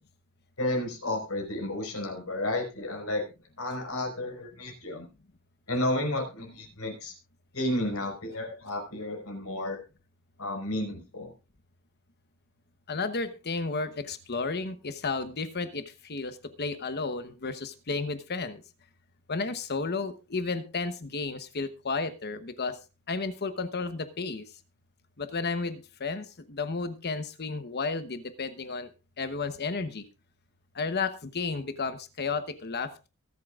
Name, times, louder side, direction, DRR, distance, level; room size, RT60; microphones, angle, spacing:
voice 1, 0.6-3.2 3.6-5.1 5.7-7.1 7.5-9.8 10.4-11.3, left 1 dB, 80° left, 2 dB, 4.9 m, -32 dB
voice 2, 12.9-18.6 19.3-22.8 23.1-24.4 25.2-28.9 29.2-30.0 30.7-33.1, left 4 dB, 50° left, 11 dB, 1.0 m, -32 dB
23.5 x 8.4 x 2.5 m, 0.29 s
head